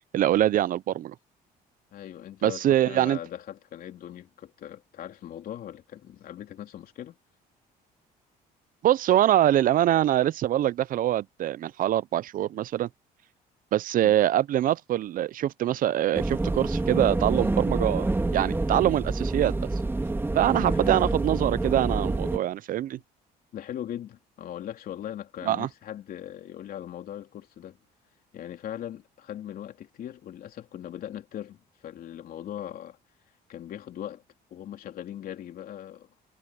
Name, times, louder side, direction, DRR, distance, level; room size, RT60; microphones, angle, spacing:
voice 1, 0.1-1.1 2.4-3.2 8.8-12.9 13.7-18.1 18.3-19.6 20.3-23.0 25.5-25.7, right 12 dB, 55° right, 0.5 m, -24 dB
voice 2, 1.9-7.1 14.0-14.1 20.6-20.9 23.5-27.8 28.3-33.0 33.5-34.2 34.5-36.1, left 11 dB, 60° left, 3.2 m, -40 dB
sound 1, 16.1-22.4, right 2 dB, 15° right, 2.6 m, -27 dB
cardioid pair, 110°, 17 cm